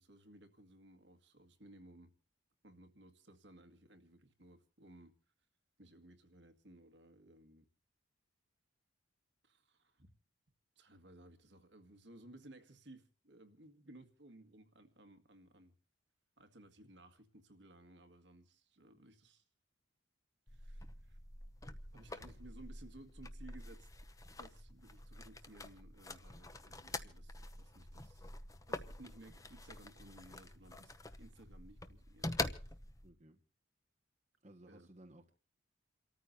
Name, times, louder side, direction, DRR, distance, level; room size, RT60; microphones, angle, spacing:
voice 1, 0.0-2.1 2.6-5.1 5.8-7.7 9.4-10.1 10.8-15.8 16.4-19.4 20.5-21.2 21.9-23.9 24.3-28.3 28.7-32.8 34.7-34.9, right 1 dB, 60° right, 2.0 m, -59 dB
sound 1, 20.5-33.1, left 2 dB, 15° left, 0.8 m, -46 dB
voice 2, 33.0-33.4 34.4-35.3, right 1 dB, 35° right, 1.6 m, -58 dB
29.0 x 14.0 x 2.8 m
head